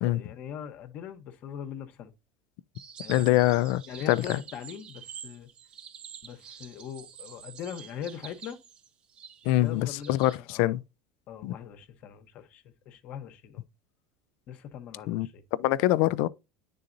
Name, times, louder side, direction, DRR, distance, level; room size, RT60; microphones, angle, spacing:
voice 1, 0.0-2.1 3.0-3.4 3.9-5.5 6.2-8.6 9.4-10.7 11.3-13.6 14.5-15.4, left 9 dB, 55° left, 0.9 m, -41 dB
sound 1, 2.7-10.4, right 8 dB, 40° right, 0.6 m, -47 dB
voice 2, 3.1-3.8 4.1-4.4 9.5-10.8 11.4-11.5 15.1-15.3 15.6-16.3, left 16 dB, 70° left, 0.3 m, -24 dB
9.7 x 3.9 x 2.6 m
supercardioid pair, 105°, 3 cm